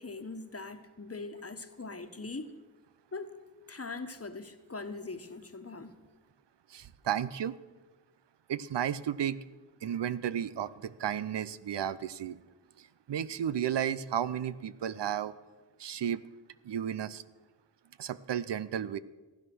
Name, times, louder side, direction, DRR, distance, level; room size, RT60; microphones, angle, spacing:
voice 1, 0.0-2.5 3.1-3.3 3.7-6.0, left 3 dB, 35° left, 1.3 m, -41 dB
voice 2, 6.7-7.6 8.5-9.4 9.8-12.4 12.8-15.3 15.8-16.2 16.6-17.2 18.0-19.0, right 9 dB, 90° right, 0.6 m, -33 dB
15.5 x 10.5 x 6.2 m
wide cardioid pair, 60°, 41 cm